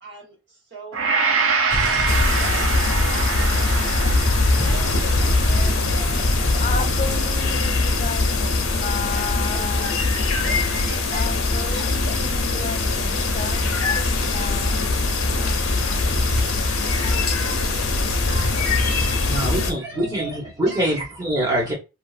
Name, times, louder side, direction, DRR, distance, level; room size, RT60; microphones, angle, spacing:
voice 1, 0.0-4.2 4.5-6.9 9.1-12.2 12.5-12.8 13.1-13.5 13.8-14.1 14.4-15.7 16.4-20.4 20.7-20.9, right 2 dB, 55° right, 1.1 m, -40 dB
Gong, 0.9-9.2 9.7-9.9, right 4 dB, 80° right, 0.5 m, -27 dB
sound 1, 1.7-19.5, left 2 dB, 55° left, 0.7 m, -30 dB
sound 2, 2.1-19.7, left 3 dB, 85° left, 0.6 m, -22 dB
voice 2, 6.6-10.1 11.1-14.0 14.3-14.9, left 4 dB, 35° left, 0.4 m, -33 dB
voice 3, 18.8-21.7, right 1 dB, 15° right, 1.1 m, -25 dB
2.8 x 2.6 x 2.4 m
head